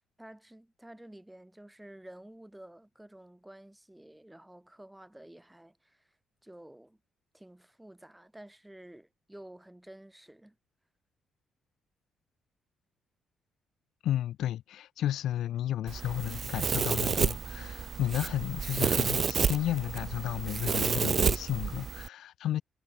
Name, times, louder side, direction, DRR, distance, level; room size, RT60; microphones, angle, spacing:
voice 1, 0.2-6.1 6.4-7.0 7.3-10.6, right 1 dB, 5° right, 2.9 m, -51 dB
voice 2, 14.0-22.6, left 12 dB, 75° left, 0.7 m, -33 dB
Domestic sounds home sounds, 15.9-22.1, right 6 dB, 45° right, 0.3 m, -30 dB
cardioid pair, 90°, 0 cm